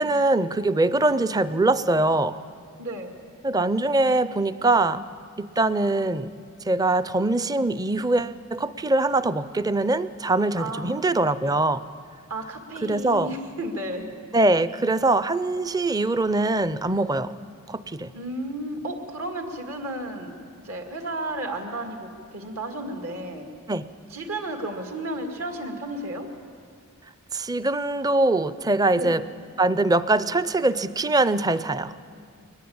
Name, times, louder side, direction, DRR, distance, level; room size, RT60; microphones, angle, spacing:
voice 1, 0.0-2.4 3.4-5.1 5.4-6.3 6.7-11.8 12.8-13.3 14.3-17.3 17.7-18.1 23.7-23.8 27.3-29.2 29.6-31.9, right 2 dB, 15° right, 15 dB, 0.5 m, -23 dB
voice 2, 2.8-3.1 10.5-11.0 12.3-14.1 18.1-20.3 20.6-23.5 24.1-26.3 28.9-29.2, right 1 dB, 70° right, 4 dB, 2.3 m, -33 dB
21.5 x 20.0 x 8.7 m, 2.2 s
head